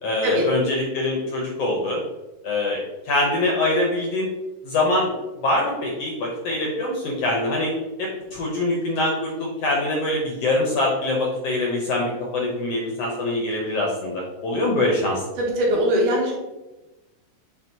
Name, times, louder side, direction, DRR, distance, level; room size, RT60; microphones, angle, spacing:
voice 1, 0.0-2.0 2.4-4.3 4.6-5.1 5.4-7.7 8.0-15.2, left 2 dB, 65° left, -2 dB, 1.7 m, -24 dB
voice 2, 15.4-16.3, equal, 75° right, -2 dB, 2.8 m, -21 dB
8.2 x 4.5 x 2.9 m, 1.0 s
omnidirectional pair, 3.8 m